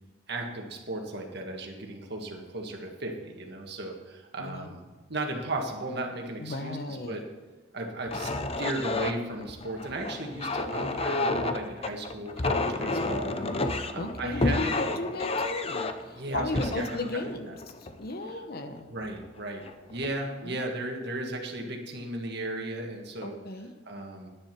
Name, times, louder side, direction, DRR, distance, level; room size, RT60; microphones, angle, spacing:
voice 1, 0.3-7.2 7.7-8.3 8.6-14.7 16.1-17.0 17.2-17.3 18.9-19.6 19.9-23.3 23.9-24.3, right 2 dB, 60° right, 2 dB, 1.8 m, -35 dB
voice 2, 4.4-4.7 6.4-7.3 13.9-18.9 20.4-20.6 23.2-23.7, left 2 dB, 55° left, 7 dB, 1.1 m, -35 dB
sound 1, 8.1-18.3 19.0-19.2 19.7-20.1, left 2 dB, 30° left, 0.7 m, -31 dB
10.5 x 10.0 x 6.1 m, 1.3 s
head